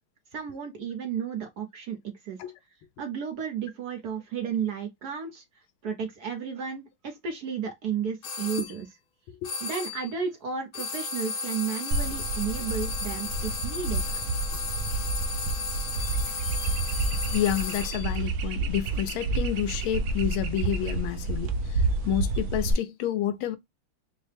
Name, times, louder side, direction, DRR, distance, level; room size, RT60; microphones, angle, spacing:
voice 1, 0.3-2.4 3.0-5.4 5.8-8.9 9.6-14.0, right 7 dB, 60° right, 1.1 m, -33 dB
sound 1, 8.2-8.7 9.4-10.1 10.7-18.1, left 4 dB, 60° left, 1.6 m, -34 dB
sound 2, 11.9-22.7, right 3 dB, 90° right, 0.8 m, -29 dB
voice 2, 17.3-23.6, left 12 dB, 80° left, 1.4 m, -29 dB
4.7 x 2.1 x 3.2 m
omnidirectional pair, 2.3 m